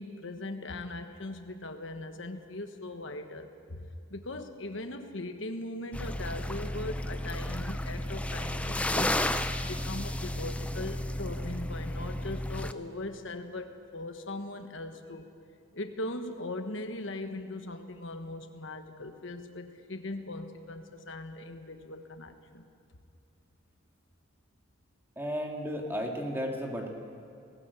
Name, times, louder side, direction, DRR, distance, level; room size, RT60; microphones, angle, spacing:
voice 1, 0.0-9.2 9.6-15.2 15.7-22.6, left 2 dB, 65° left, 7 dB, 1.3 m, -40 dB
sound 1, 5.9-12.7, left 1 dB, 5° left, 0.5 m, -33 dB
voice 2, 25.2-26.9, equal, 10° right, 1 dB, 2.1 m, -33 dB
19.0 x 18.0 x 8.2 m, 2.5 s
head